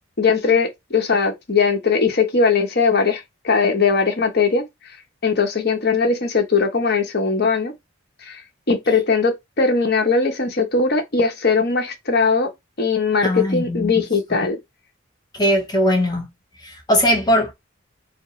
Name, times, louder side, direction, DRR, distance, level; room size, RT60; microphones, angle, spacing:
voice 1, 0.2-4.6 5.2-7.7 8.2-8.4 8.7-12.5 12.8-14.6, left 4 dB, 50° left, 1.0 m, -19 dB
voice 2, 13.2-13.9 15.3-16.3 16.6-17.5, equal, 20° left, 0.8 m, -19 dB
4.7 x 2.1 x 3.1 m
head